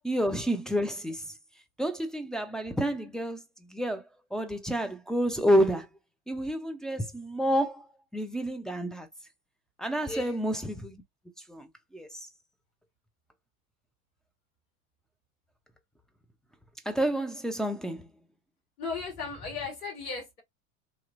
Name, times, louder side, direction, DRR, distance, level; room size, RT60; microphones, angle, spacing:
voice 1, 0.0-1.2 1.8-3.4 3.7-4.0 4.3-5.9 6.3-7.8 8.1-9.1 9.8-11.0 11.5-11.7 11.9-12.1 16.9-18.0, equal, ahead, 0.5 m, -29 dB
voice 2, 10.0-10.4 18.8-20.4, left 4 dB, 85° left, 1.7 m, -36 dB
3.0 x 2.9 x 2.5 m
hypercardioid pair, 90°, 45 cm